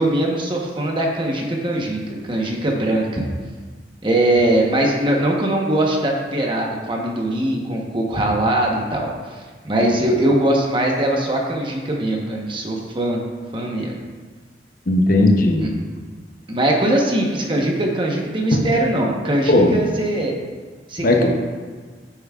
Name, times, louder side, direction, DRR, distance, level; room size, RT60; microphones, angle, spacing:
voice 1, 0.0-3.3 4.0-13.2 13.5-14.0 15.6-15.7 16.5-20.3 20.9-21.3, right 1 dB, 30° right, -1 dB, 1.0 m, -21 dB
voice 2, 14.9-15.7 18.5-18.7 19.5-19.8 21.0-21.3, left 2 dB, 55° left, 2 dB, 0.8 m, -16 dB
9.3 x 7.1 x 2.4 m, 1.4 s
head